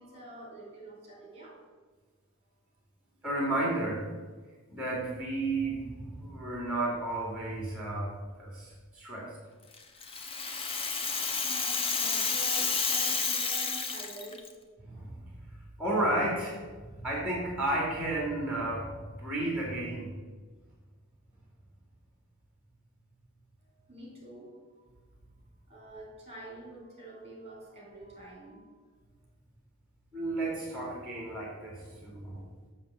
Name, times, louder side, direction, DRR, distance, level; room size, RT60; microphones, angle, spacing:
voice 1, 0.0-1.6 10.7-14.5 23.6-24.6 25.7-28.7, right 2 dB, 30° right, -2 dB, 3.2 m, -47 dB
voice 2, 3.2-4.0 4.7-8.1 8.4-9.3 14.8-15.1 15.8-20.1 30.1-32.4, right 2 dB, 5° right, -4 dB, 2.7 m, -32 dB
Rattle (instrument), 9.7-14.5, left 5 dB, 25° left, 0.8 m, -30 dB
7.5 x 6.9 x 8.1 m, 1.4 s
head